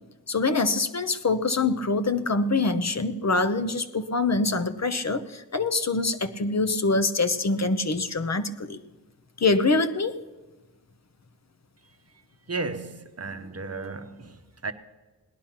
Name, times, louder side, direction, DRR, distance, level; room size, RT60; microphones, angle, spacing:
voice 1, 0.3-8.8 9.4-10.1, left 3 dB, 40° left, 1.0 m, -25 dB
voice 2, 12.5-14.7, right 3 dB, 35° right, 1.0 m, -34 dB
18.0 x 10.5 x 5.8 m
cardioid pair, 60°, 41 cm